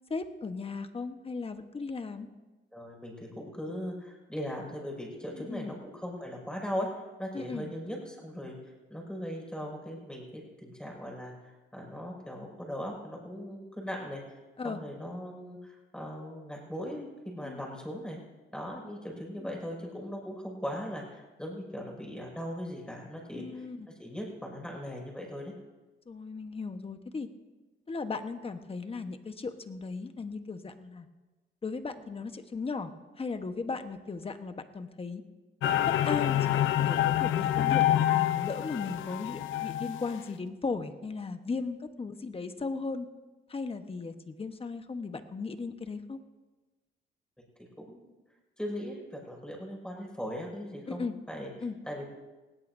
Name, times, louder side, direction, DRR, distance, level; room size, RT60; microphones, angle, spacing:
voice 1, 0.1-2.3 5.4-5.8 7.3-7.7 14.6-14.8 17.4-17.6 19.4-19.5 23.3-23.9 26.1-27.3 27.9-31.1 31.6-32.9 33.2-35.2 35.9-43.1 43.5-46.2 50.9-51.1 51.6-51.7, left 4 dB, 30° left, 8 dB, 1.2 m, -37 dB
voice 2, 2.7-6.9 7.2-14.2 14.6-18.2 18.5-23.7 24.0-25.5 47.6-48.1 48.6-51.5 51.8-52.1, equal, 5° left, -1 dB, 5.8 m, -39 dB
sound 1, 35.6-40.2, left 12 dB, 80° left, 0.7 m, -27 dB
20.0 x 16.5 x 2.7 m, 1.2 s
cardioid pair, 90°, 20 cm